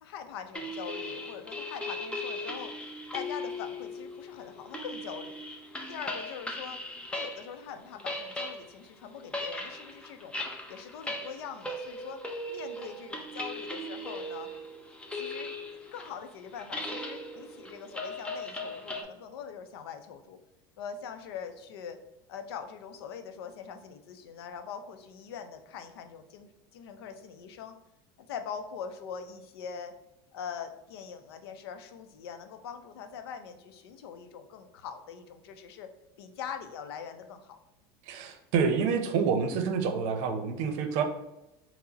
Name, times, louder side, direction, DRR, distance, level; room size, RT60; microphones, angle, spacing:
voice 1, 0.0-2.7 3.1-5.3 5.9-6.8 7.1-10.4 10.7-12.2 12.5-14.5 15.1-15.5 15.9-20.4 20.8-22.0 22.3-27.7 28.2-29.9 30.3-35.9 36.2-37.6, left 7 dB, 90° left, 8 dB, 0.5 m, -42 dB
sound 1, 0.5-7.6 7.8-19.0, left 1 dB, 10° left, 0.6 m, -38 dB
voice 2, 38.1-41.0, right 6 dB, 65° right, 6 dB, 0.6 m, -28 dB
4.6 x 2.1 x 3.9 m, 0.94 s
supercardioid pair, 115°, 13 cm